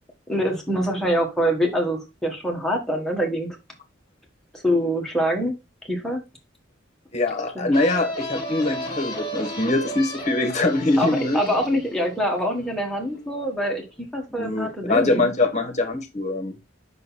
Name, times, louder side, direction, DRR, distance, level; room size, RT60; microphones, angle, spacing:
voice 1, 0.3-3.5 4.6-5.5 5.9-6.2 7.5-7.7 11.0-15.2, equal, 5° left, 1.6 m, -24 dB
voice 2, 7.1-11.4 14.4-16.5, left 2 dB, 40° left, 1.3 m, -23 dB
sound 1, 7.7-13.2, equal, 25° left, 1.7 m, -34 dB
5.8 x 4.0 x 4.1 m
head